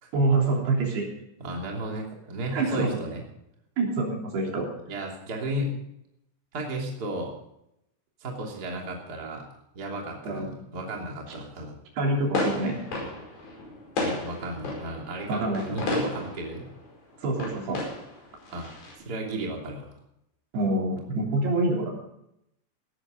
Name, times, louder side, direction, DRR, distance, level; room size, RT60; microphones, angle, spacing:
voice 1, 0.1-1.1 2.5-3.0 3.8-4.7 10.2-10.5 12.0-12.8 15.3-15.7 17.2-17.8 20.5-21.9, right 2 dB, 70° right, -1 dB, 5.3 m, -26 dB
voice 2, 1.4-3.2 4.9-5.8 6.5-7.3 8.2-9.4 9.7-11.7 14.0-16.7 18.5-18.7 19.0-19.9, right 1 dB, 25° right, 0 dB, 2.9 m, -34 dB
sound 1, 12.1-18.9, left 2 dB, 55° left, 6.7 m, -34 dB
17.5 x 13.5 x 3.9 m, 0.80 s
omnidirectional pair, 4.9 m